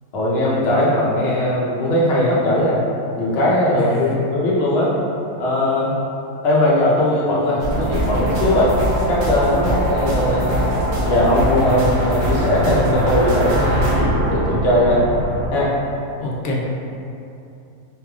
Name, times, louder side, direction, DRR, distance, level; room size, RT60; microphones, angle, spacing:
voice 1, 0.1-2.8 3.2-4.9 5.4-5.9 6.4-8.7 9.1-10.7 11.1-15.0 15.5-15.7, left 1 dB, 50° left, -7 dB, 1.0 m, -19 dB
voice 2, 3.8-4.2 16.2-16.7, left 2 dB, 85° left, -3 dB, 1.1 m, -25 dB
sound 1, 7.6-15.5, right 1 dB, 80° right, 1.3 m, -22 dB
4.5 x 3.3 x 2.3 m, 2.7 s
omnidirectional pair, 1.5 m